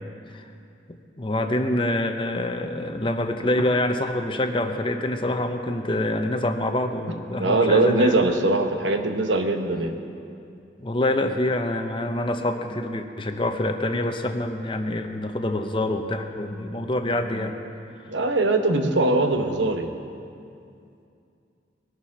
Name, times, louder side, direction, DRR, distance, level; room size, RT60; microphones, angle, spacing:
voice 1, 0.9-8.2 10.8-17.6, left 1 dB, 25° left, 6 dB, 0.7 m, -26 dB
voice 2, 7.4-9.9 18.1-19.9, right 2 dB, 80° right, 5 dB, 1.1 m, -21 dB
21.5 x 7.2 x 5.9 m, 2.5 s
head